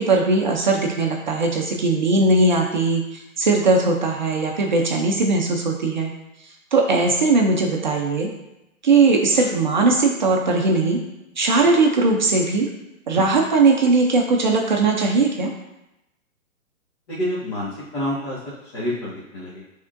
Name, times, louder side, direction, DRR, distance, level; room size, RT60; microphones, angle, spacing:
voice 1, 0.0-6.1 6.7-8.3 8.8-11.0 11.4-12.7 13.1-15.5, right 3 dB, 35° right, 0 dB, 0.6 m, -19 dB
voice 2, 17.1-18.4 18.7-19.6, left 1 dB, 30° left, -10 dB, 1.5 m, -28 dB
11.0 x 3.6 x 2.5 m, 0.93 s
hypercardioid pair, 165°, 41 cm